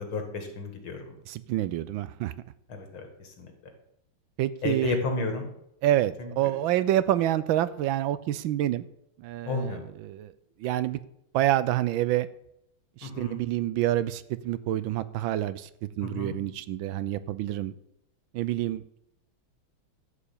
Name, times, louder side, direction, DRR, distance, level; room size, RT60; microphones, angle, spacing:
voice 1, 0.0-1.2 2.7-3.5 4.6-5.5 6.2-6.3 9.5-9.9 13.0-13.4 16.0-16.4, left 3 dB, 80° left, 5 dB, 2.8 m, -32 dB
voice 2, 1.3-2.3 4.4-5.0 5.8-8.8 9.2-10.3 10.6-11.0 11.3-12.3 13.0-15.7 16.0-17.7 18.3-19.0, right 13 dB, 75° right, 15 dB, 1.4 m, -27 dB
13.0 x 5.0 x 8.5 m, 0.78 s
omnidirectional pair, 2.2 m